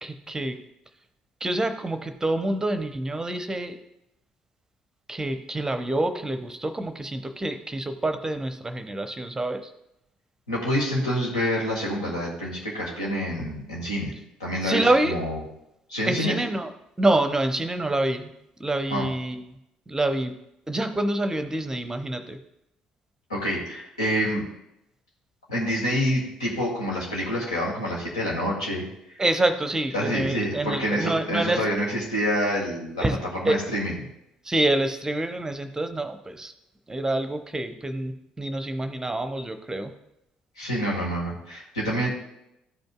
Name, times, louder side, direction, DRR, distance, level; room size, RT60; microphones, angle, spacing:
voice 1, 0.0-0.6 1.4-3.8 5.1-9.6 14.6-15.2 16.1-16.7 17.0-18.3 18.6-19.4 19.9-20.3 20.7-22.4 29.2-31.6 33.0-33.2 33.4-33.6 34.4-36.5 36.9-39.9, right 2 dB, 15° right, 8 dB, 0.7 m, -26 dB
voice 2, 10.5-14.1 14.4-15.4 15.9-16.3 18.9-19.0 23.3-24.4 25.5-28.8 29.1-29.2 29.9-33.0 33.3-34.0 40.5-42.1, equal, 80° left, -3 dB, 1.7 m, -27 dB
13.0 x 5.2 x 2.3 m, 0.82 s
figure-of-eight pair, 50°, 3 cm